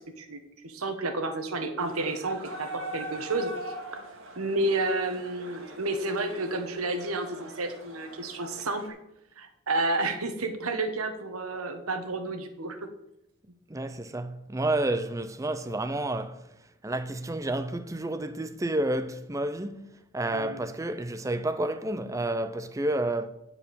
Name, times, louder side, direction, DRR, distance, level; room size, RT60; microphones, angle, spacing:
voice 1, 0.2-3.7 4.4-9.0 9.4-12.8 20.3-20.6, right 2 dB, 90° right, 1.3 m, -31 dB
sound 1, 1.8-8.9, right 2 dB, 70° right, 1.8 m, -42 dB
voice 2, 13.7-16.4 16.8-23.3, right 1 dB, 15° right, 0.5 m, -30 dB
9.8 x 4.7 x 6.9 m
head